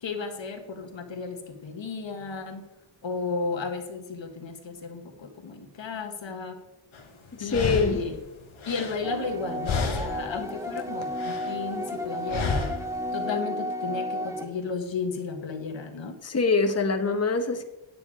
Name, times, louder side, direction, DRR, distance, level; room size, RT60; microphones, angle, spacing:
voice 1, 0.0-2.6 3.0-6.6 7.4-8.1 8.6-12.6 13.1-16.2, left 4 dB, 70° left, 1.5 m, -34 dB
sound 1, 6.9-7.0 7.5-9.4 9.6-10.4 10.7-11.6 12.3-13.0, left 4 dB, 90° left, 1.4 m, -31 dB
voice 2, 7.3-8.0 16.2-17.6, left 4 dB, 35° left, 1.0 m, -24 dB
sound 2, 9.0-14.5, equal, 5° right, 1.0 m, -32 dB
9.4 x 9.2 x 4.9 m
wide cardioid pair, 130°, 46 cm